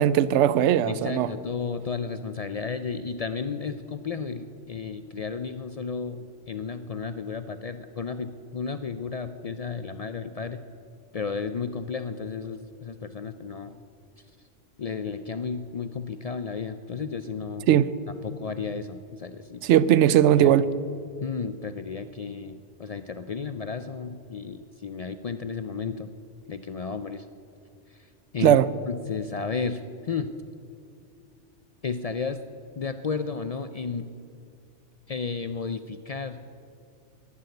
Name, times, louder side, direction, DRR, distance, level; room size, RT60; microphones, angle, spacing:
voice 1, 0.0-1.3 17.7-17.9 19.6-20.7 28.4-28.7, right 11 dB, 75° right, 0.9 m, -19 dB
voice 2, 0.9-10.6 11.1-13.8 14.8-17.7 18.2-19.6 20.4-20.6 21.2-26.1 26.5-27.3 27.9-28.1 28.3-28.6 28.9-30.3 31.8-32.4 32.8-34.1 35.1-36.4, left 5 dB, 55° left, 0.4 m, -33 dB
11.0 x 10.5 x 9.5 m
omnidirectional pair, 1.2 m